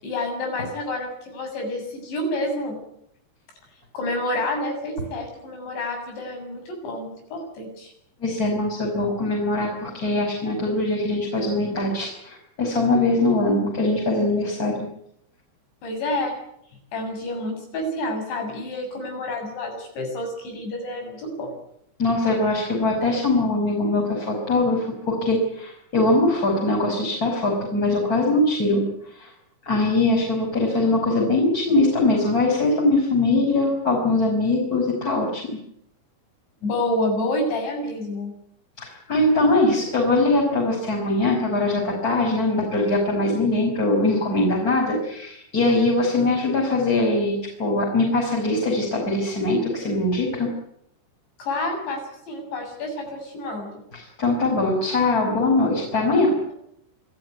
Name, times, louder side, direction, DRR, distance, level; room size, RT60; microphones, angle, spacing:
voice 1, 0.0-2.8 3.9-7.9 15.8-16.4 16.9-21.5 36.6-38.3 51.4-52.0 52.3-53.8, left 1 dB, 70° left, 4 dB, 9.4 m, -28 dB
voice 2, 8.2-14.8 22.0-29.3 29.6-35.6 38.8-50.5 53.9-56.3, left 2 dB, 20° left, -1 dB, 5.5 m, -22 dB
27.0 x 15.0 x 9.4 m, 0.74 s
omnidirectional pair, 5.3 m